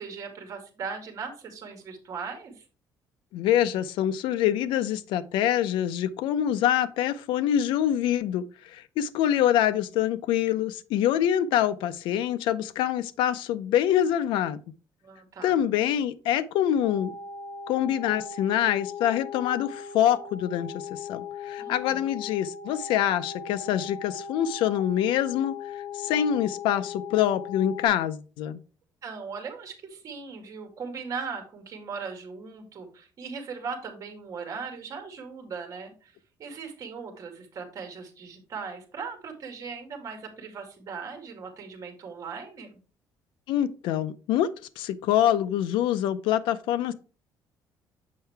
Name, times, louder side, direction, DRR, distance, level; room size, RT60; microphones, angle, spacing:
voice 1, 0.0-2.7 15.0-15.6 21.6-22.1 29.0-42.8, right 5 dB, 45° right, 2.1 m, -39 dB
voice 2, 3.3-14.6 15.4-17.1 17.7-25.5 25.9-28.6 43.5-44.5 44.8-46.9, left 11 dB, 90° left, 0.5 m, -25 dB
sound 1, 16.8-27.9, left 6 dB, 65° left, 1.3 m, -39 dB
7.5 x 5.6 x 3.4 m
cardioid pair, 140°, 8 cm